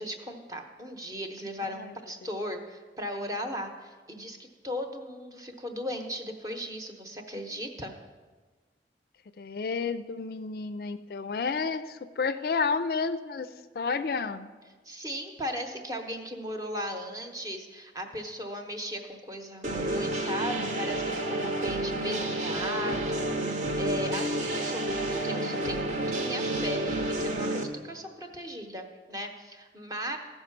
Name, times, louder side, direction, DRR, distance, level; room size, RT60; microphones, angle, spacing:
voice 1, 0.0-7.9 14.8-30.2, equal, 20° right, 4 dB, 0.9 m, -37 dB
voice 2, 1.7-2.3 9.4-14.5, left 4 dB, 55° left, 11 dB, 0.4 m, -31 dB
sound 1, 19.6-27.6, right 1 dB, 40° right, 0.9 m, -30 dB
14.5 x 5.6 x 5.9 m, 1.4 s
head